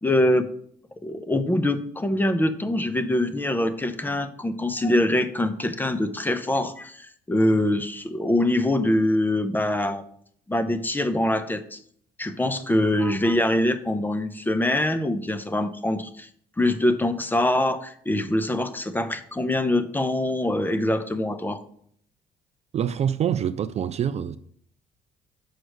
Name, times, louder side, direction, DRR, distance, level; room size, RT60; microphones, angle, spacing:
voice 1, 0.0-0.5 1.0-10.0 10.5-11.8 12.2-16.3 16.6-21.6, left 1 dB, 10° left, 0.6 m, -24 dB
voice 2, 22.7-24.4, right 9 dB, 40° right, 0.4 m, -25 dB
6.4 x 4.6 x 6.3 m
cardioid pair, 110°, 17 cm